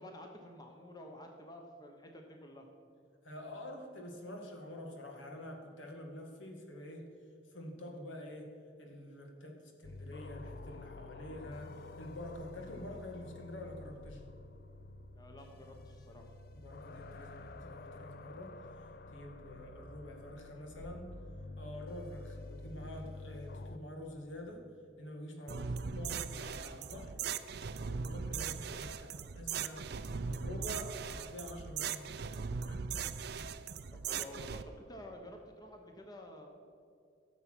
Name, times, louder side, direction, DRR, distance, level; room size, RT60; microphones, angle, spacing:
voice 1, 0.0-2.7 15.1-16.3 33.9-36.5, left 1 dB, 20° left, 2 dB, 1.0 m, -50 dB
voice 2, 3.2-7.1 7.5-8.5 8.8-14.2 16.5-21.1 21.6-24.7 25.0-27.2 27.7-30.0 30.3-33.2, left 1 dB, 75° left, 2 dB, 1.9 m, -47 dB
sound 1, 9.8-23.8, left 2 dB, 50° left, 0.5 m, -49 dB
sound 2, 25.5-34.6, right 6 dB, 55° right, 0.5 m, -39 dB
13.0 x 7.1 x 6.2 m, 2.4 s
head